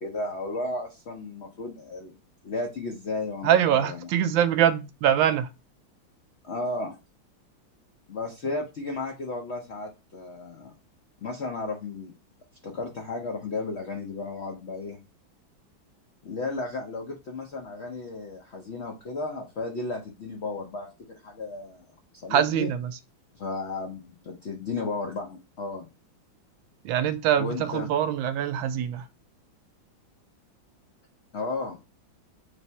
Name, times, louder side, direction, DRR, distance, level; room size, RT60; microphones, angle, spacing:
voice 1, 0.0-2.1 2.4-4.1 6.4-7.0 8.1-10.7 11.2-12.1 12.6-15.0 16.2-21.9 22.2-22.7 23.3-25.9 27.4-27.9 31.3-31.8, left 3 dB, 80° left, 0.6 m, -34 dB
voice 2, 3.4-5.5 22.3-23.0 26.8-29.1, right 10 dB, 80° right, 1.3 m, -23 dB
3.4 x 3.1 x 4.1 m
omnidirectional pair, 2.2 m